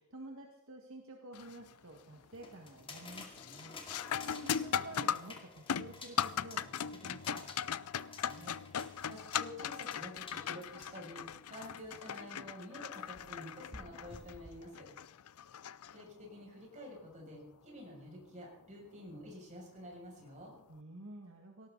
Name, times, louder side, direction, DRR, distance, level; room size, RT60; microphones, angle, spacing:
voice 1, 0.0-7.5 20.7-21.7, right 1 dB, 65° right, 2 dB, 1.9 m, -51 dB
sound 1, 1.3-1.7 2.1-2.6 2.9-16.4 18.9-19.0 19.9-20.1, left 8 dB, 85° left, 0.5 m, -39 dB
sound 2, 2.3-12.3 12.9-14.7, left 3 dB, 25° left, 2.3 m, -53 dB
voice 2, 8.1-14.9 15.9-20.5, equal, 35° right, -2 dB, 7.1 m, -50 dB
18.5 x 18.0 x 4.1 m, 0.79 s
head